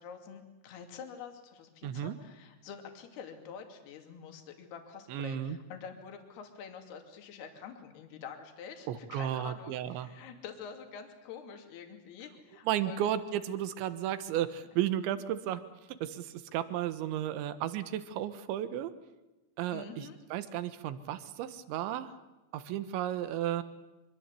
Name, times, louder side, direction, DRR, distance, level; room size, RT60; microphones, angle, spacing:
voice 1, 0.0-13.1 19.7-20.2, left 6 dB, 55° left, 4 dB, 4.4 m, -47 dB
voice 2, 1.8-2.2 5.1-5.6 8.9-10.1 12.7-15.6 16.0-18.9 19.6-22.2 22.5-23.6, right 11 dB, 70° right, 11 dB, 3.4 m, -33 dB
25.5 x 24.0 x 8.3 m, 1.1 s
omnidirectional pair, 5.7 m